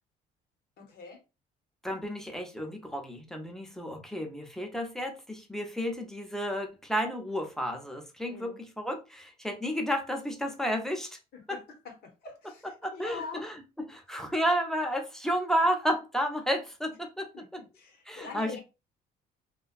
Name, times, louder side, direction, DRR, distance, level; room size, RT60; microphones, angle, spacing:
voice 1, 0.8-1.2 8.3-8.6 11.3-13.4 17.3-18.6, left 4 dB, 65° left, 0.8 m, -44 dB
voice 2, 1.8-11.2 11.5-11.6 12.8-17.6 18.1-18.6, equal, 5° left, 0.6 m, -32 dB
2.6 x 2.2 x 2.4 m
cardioid pair, 110°, 17 cm